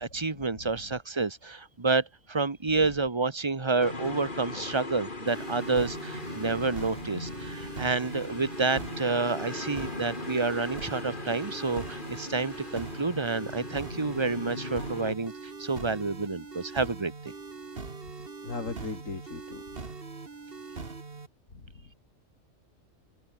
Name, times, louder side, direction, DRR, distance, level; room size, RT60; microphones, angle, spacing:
voice 1, 0.0-15.3 15.6-17.3, right 3 dB, 20° right, 1.2 m, -29 dB
sound 1, 3.8-15.2, left 2 dB, 40° left, 3.2 m, -39 dB
sound 2, 5.3-21.3, right 4 dB, 45° right, 2.3 m, -42 dB
voice 2, 18.4-19.6, left 4 dB, 80° left, 3.1 m, -37 dB
open air
omnidirectional pair, 1.3 m